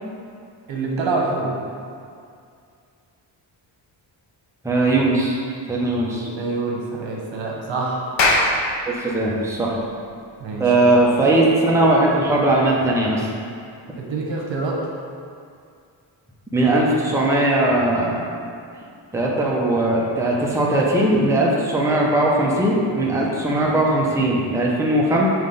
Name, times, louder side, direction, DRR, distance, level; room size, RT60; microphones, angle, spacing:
voice 1, 0.7-1.5 6.0-8.1 10.4-10.9 14.0-14.8, right 3 dB, 80° right, -2 dB, 1.1 m, -26 dB
voice 2, 4.6-5.4 5.7-6.3 8.9-9.9 10.6-13.3 16.5-18.3 19.1-25.3, right 1 dB, 5° right, -4 dB, 0.7 m, -19 dB
Clapping, 8.2-12.8, left 2 dB, 75° left, 0.8 m, -25 dB
5.8 x 3.2 x 5.3 m, 2.3 s
wide cardioid pair, 140°, 45 cm